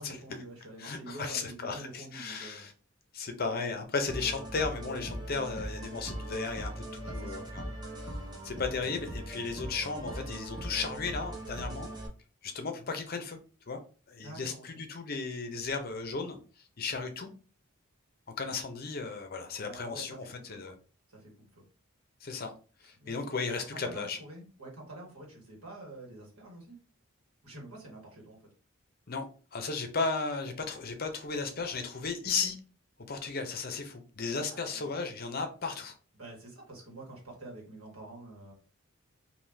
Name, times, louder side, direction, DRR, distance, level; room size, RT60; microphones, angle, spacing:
voice 1, 0.0-2.7 7.0-7.5 14.2-14.7 19.6-20.0 20.5-20.7 21.1-21.6 23.0-23.2 23.7-26.8 27.4-28.4 34.5-34.9 36.2-38.5, right 2 dB, 90° right, -1 dB, 1.4 m, -47 dB
voice 2, 0.8-2.7 3.1-7.7 8.4-11.9 12.4-13.4 13.7-13.8 14.1-16.4 16.8-17.3 18.4-20.7 22.2-22.5 22.8-24.2 29.1-32.6 33.1-35.9, left 4 dB, 45° left, 6 dB, 0.6 m, -35 dB
sound 1, 4.1-12.1, right 1 dB, 20° right, 0.6 m, -40 dB
3.5 x 2.6 x 2.6 m, 0.36 s
head